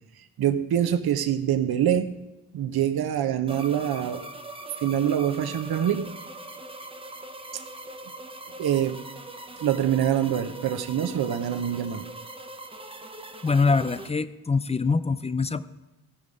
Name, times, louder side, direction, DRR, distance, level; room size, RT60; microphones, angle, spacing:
voice 1, 0.4-2.1 2.5-4.2 4.8-6.1 8.6-9.0 9.6-12.0, right 10 dB, 65° right, 8 dB, 0.8 m, -25 dB
sound 1, 3.5-14.1, right 2 dB, 15° right, 0.7 m, -41 dB
voice 2, 13.4-15.6, left 4 dB, 15° left, 14 dB, 0.4 m, -24 dB
16.0 x 5.3 x 4.9 m, 1.0 s
cardioid pair, 80°, 40 cm